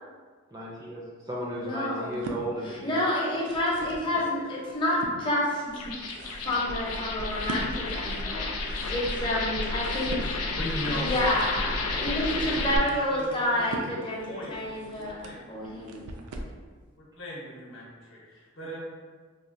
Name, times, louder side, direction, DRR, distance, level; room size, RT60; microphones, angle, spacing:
voice 1, 0.5-3.1 4.1-4.2, right 1 dB, 15° right, -4 dB, 0.4 m, -35 dB
voice 2, 1.6-2.2 2.6-5.6 6.4-10.2 10.8-11.7 11.9-14.2 14.5-16.1, left 1 dB, 20° left, -6 dB, 0.6 m, -29 dB
sound 1, 2.0-2.4 3.2-4.1 4.6-5.2 5.8-16.6, right 2 dB, 85° right, 0.4 m, -41 dB
voice 3, 4.1-4.5 10.5-15.8 17.0-18.8, equal, 55° left, -5 dB, 0.8 m, -40 dB
sound 2, 5.7-12.8, left 3 dB, 80° left, 0.4 m, -32 dB
4.2 x 2.3 x 2.5 m, 1.5 s
head